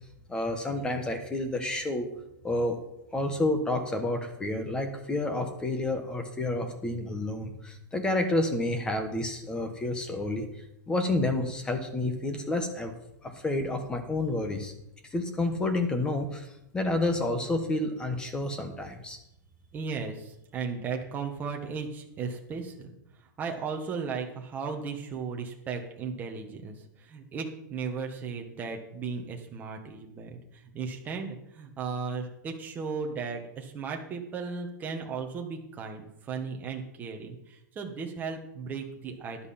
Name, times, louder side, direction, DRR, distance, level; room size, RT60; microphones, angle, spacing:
voice 1, 0.3-2.1 2.4-2.8 3.1-10.5 10.9-12.9 13.2-14.7 15.1-16.5 16.7-19.2, left 2 dB, 10° left, 6 dB, 1.3 m, -29 dB
voice 2, 19.7-22.9 23.4-39.5, right 5 dB, 15° right, 2 dB, 1.5 m, -36 dB
13.5 x 11.0 x 4.3 m, 0.83 s
supercardioid pair, 165°, 11 cm